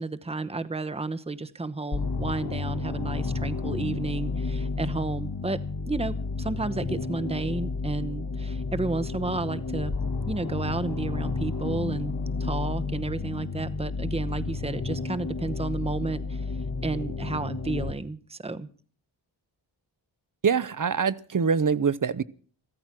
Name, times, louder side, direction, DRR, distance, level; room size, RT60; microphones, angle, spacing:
voice 1, 0.0-5.6 5.9-9.9 10.3-12.1 12.4-16.4 16.8-18.7, right 3 dB, 15° right, 11 dB, 0.9 m, -32 dB
sound 1, 1.9-17.9, left 4 dB, 50° left, 1.5 m, -31 dB
voice 2, 20.4-22.2, right 6 dB, 40° right, 17 dB, 0.8 m, -24 dB
14.0 x 13.5 x 6.0 m, 0.43 s
cardioid pair, 55°, 47 cm